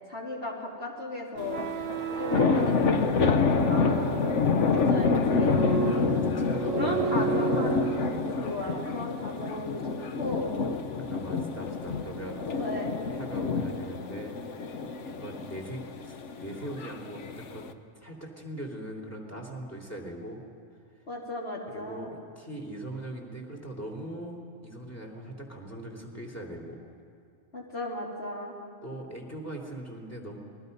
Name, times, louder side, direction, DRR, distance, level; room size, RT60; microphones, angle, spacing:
voice 1, 0.1-1.7 2.2-4.2 4.6-5.5 6.7-9.8 10.2-10.6 12.6-12.9 21.1-22.1 27.5-28.5, left 1 dB, 55° left, -3 dB, 3.7 m, -36 dB
sound 1, 1.4-17.7, left 5 dB, 75° left, 1.2 m, -28 dB
sound 2, 1.4-8.3, right 7 dB, 80° right, 1.1 m, -33 dB
voice 2, 5.8-7.8 11.0-12.6 13.1-14.4 14.7-17.6 18.0-20.4 21.7-26.8 28.8-30.4, right 1 dB, 10° left, -1 dB, 3.2 m, -40 dB
29.0 x 21.0 x 5.4 m, 2.3 s
omnidirectional pair, 1.3 m